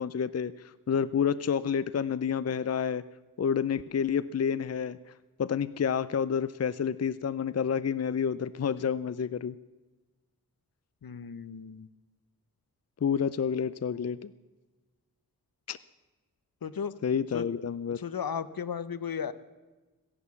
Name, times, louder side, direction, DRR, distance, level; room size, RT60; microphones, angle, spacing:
voice 1, 0.0-3.0 3.4-5.0 5.4-9.6 13.0-14.3 15.7-15.8 17.0-18.0, left 7 dB, 45° left, 17 dB, 0.5 m, -29 dB
voice 2, 11.0-11.9 16.6-16.9 17.3-17.4 17.9-19.3, left 7 dB, 75° left, 15 dB, 0.8 m, -35 dB
16.5 x 11.0 x 7.0 m, 1.2 s
wide cardioid pair, 60°, 36 cm